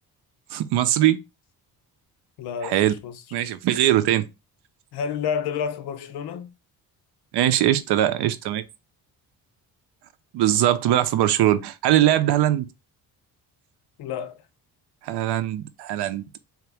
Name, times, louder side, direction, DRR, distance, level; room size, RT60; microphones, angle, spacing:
voice 1, 0.5-1.2 2.6-2.9 3.3-4.3 7.3-8.6 10.3-12.7 15.0-16.2, right 12 dB, 80° right, 0.7 m, -21 dB
voice 2, 2.4-3.2 4.9-6.5 14.0-14.4, left 7 dB, 75° left, 0.7 m, -30 dB
3.9 x 2.9 x 3.3 m
cardioid pair, 170°, 40 cm